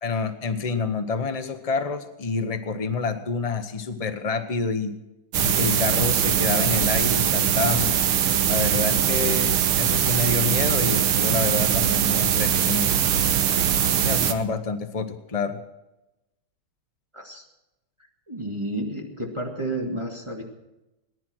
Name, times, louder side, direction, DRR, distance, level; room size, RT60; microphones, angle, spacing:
voice 1, 0.0-4.9 5.4-7.9 8.5-12.9 14.0-15.6, left 4 dB, 70° left, 8 dB, 0.3 m, -28 dB
sound 1, 5.3-14.3, right 9 dB, 90° right, 1.9 m, -22 dB
voice 2, 17.1-17.4 18.3-20.4, right 1 dB, 15° right, 0 dB, 1.9 m, -31 dB
19.0 x 11.0 x 6.2 m, 0.96 s
omnidirectional pair, 2.3 m